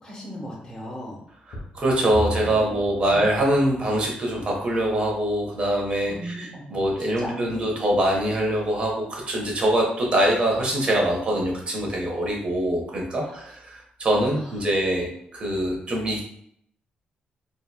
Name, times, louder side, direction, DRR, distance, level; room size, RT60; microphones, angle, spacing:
voice 1, 0.0-1.2 3.0-3.3 6.1-7.7 13.2-13.3 14.3-14.5, equal, 20° left, -4 dB, 0.6 m, -37 dB
sound 1, 1.5-4.0 4.6-4.7 5.3-5.4, equal, 80° left, 0.6 m, -34 dB
voice 2, 1.5-16.2, right 1 dB, 35° right, -1 dB, 0.7 m, -24 dB
2.7 x 2.2 x 2.2 m, 0.70 s
wide cardioid pair, 155°, 3 cm